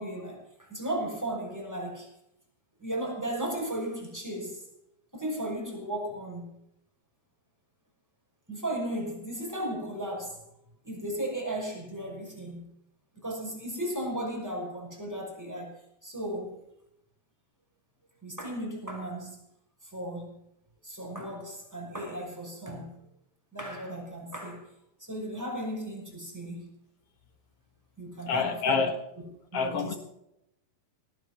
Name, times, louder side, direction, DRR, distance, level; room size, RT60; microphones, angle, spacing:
voice 1, 0.0-2.1 2.8-4.6 5.1-6.6 8.5-10.4 10.8-12.7 13.2-15.7 16.0-16.6 18.2-19.4 19.9-20.3 20.8-22.9 23.5-24.7 25.0-26.7 28.0-28.9 29.5-30.0, right 1 dB, 5° right, 5.4 m, -35 dB
voice 2, 28.3-29.0 29.5-29.9, left 5 dB, 55° left, 1.9 m, -27 dB
18.0 x 11.5 x 6.1 m
omnidirectional pair, 4.5 m